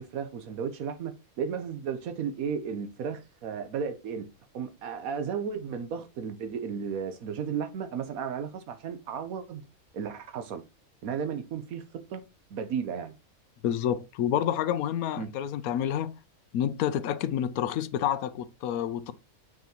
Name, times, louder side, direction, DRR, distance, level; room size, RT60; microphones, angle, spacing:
voice 1, 0.0-4.3 4.5-9.6 9.9-10.6 11.0-12.2 12.5-13.1 15.2-15.3, right 7 dB, 90° right, 1.2 m, -34 dB
voice 2, 13.6-16.1 16.5-19.1, left 10 dB, 90° left, 1.1 m, -29 dB
7.1 x 6.2 x 2.9 m
omnidirectional pair, 1.5 m